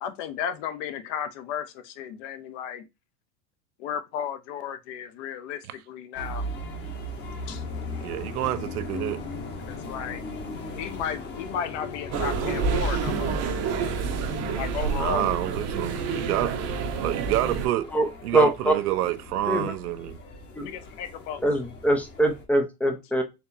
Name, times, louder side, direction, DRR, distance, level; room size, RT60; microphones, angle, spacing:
voice 1, 0.0-2.8 3.8-6.4 7.5-7.6 9.7-10.2 10.8-13.3 14.6-15.4 20.6-21.4, left 8 dB, 50° left, 0.9 m, -34 dB
sound 1, 6.1-22.4, left 2 dB, 20° left, 1.0 m, -39 dB
voice 2, 8.0-9.2 13.9-14.0 14.9-17.9 18.2-20.2, right 14 dB, 70° right, 0.7 m, -28 dB
sound 2, 12.1-17.7, right 5 dB, 35° right, 0.9 m, -28 dB
voice 3, 18.3-18.7 19.5-19.7 20.5-20.7 21.4-23.2, right 1 dB, 5° left, 0.5 m, -23 dB
4.5 x 3.4 x 2.6 m
supercardioid pair, 130°, 46 cm